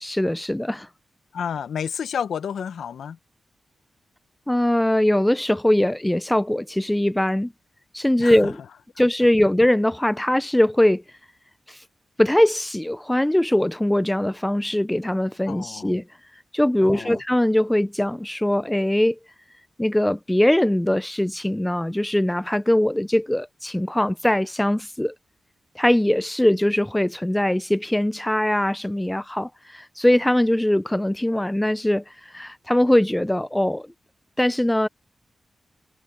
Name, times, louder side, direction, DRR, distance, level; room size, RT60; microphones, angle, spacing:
voice 1, 0.0-0.9 4.5-7.5 7.9-8.6 9.0-11.0 11.7-11.8 12.2-16.0 16.5-19.2 19.8-25.1 25.8-33.9 34.4-34.9, left 1 dB, 10° left, 0.8 m, -21 dB
voice 2, 1.3-3.2 8.2-8.5 15.5-15.9 16.8-17.2, left 7 dB, 80° left, 1.4 m, -30 dB
supercardioid pair, 40°, 0 cm